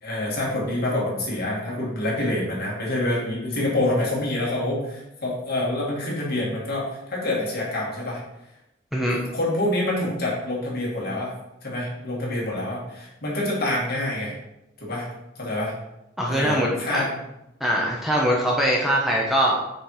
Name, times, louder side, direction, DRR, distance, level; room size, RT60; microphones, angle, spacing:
voice 1, 0.0-8.2 9.3-11.3 11.6-14.4 14.8-15.1 15.4-15.7 16.3-17.1, left 1 dB, 55° left, -5 dB, 2.5 m, -26 dB
voice 2, 16.2-17.1 17.6-19.6, equal, ahead, -3 dB, 0.9 m, -22 dB
6.2 x 4.3 x 4.9 m, 0.89 s
head